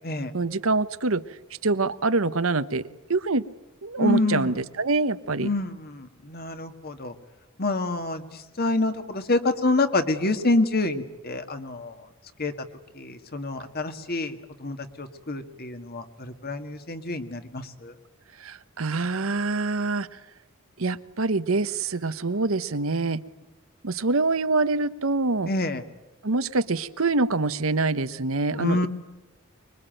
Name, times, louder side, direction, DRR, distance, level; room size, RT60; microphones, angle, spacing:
voice 1, 0.3-1.2 1.6-3.5 3.8-5.5 18.4-20.2 20.8-23.2 23.8-25.5 26.2-28.9, right 3 dB, 75° right, 13 dB, 1.1 m, -25 dB
voice 2, 4.0-4.5 5.4-7.1 7.6-12.1 12.4-12.5 13.0-17.9 25.5-25.8 28.6-28.9, left 2 dB, 45° left, 8 dB, 2.0 m, -27 dB
25.0 x 23.5 x 9.1 m, 1.0 s
head